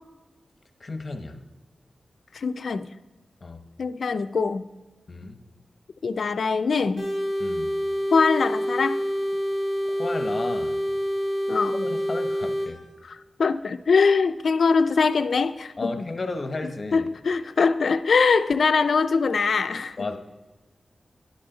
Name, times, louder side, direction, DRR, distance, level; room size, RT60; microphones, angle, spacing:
voice 1, 0.8-1.4 3.4-3.6 5.1-5.4 7.4-7.7 9.9-10.8 11.8-12.8 15.8-17.1 20.0-20.2, left 3 dB, 40° left, 6 dB, 0.9 m, -33 dB
voice 2, 2.3-2.9 3.8-4.6 6.0-7.1 8.1-9.0 11.5-11.9 13.0-16.0 16.9-20.0, left 5 dB, 70° left, 11 dB, 0.4 m, -22 dB
sound 1, 7.0-12.7, equal, 65° right, 3.0 m, -27 dB
11.5 x 8.7 x 3.9 m, 1.2 s
wide cardioid pair, 135°, 0 cm